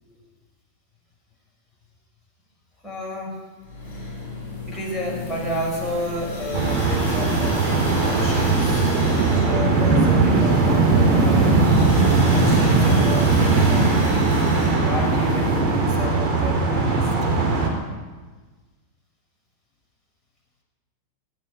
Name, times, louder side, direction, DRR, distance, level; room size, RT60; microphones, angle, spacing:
voice 1, 2.8-3.5 4.7-8.8 9.3-11.6 12.2-14.3 14.6-17.1, left 1 dB, 5° left, -4 dB, 5.4 m, -31 dB
sound 1, 3.6-15.6, left 2 dB, 80° left, 5.5 m, -32 dB
sound 2, 6.5-17.7, right 3 dB, 25° right, 3.9 m, -19 dB
16.0 x 8.5 x 8.9 m, 1.3 s
figure-of-eight pair, 90°, 0 cm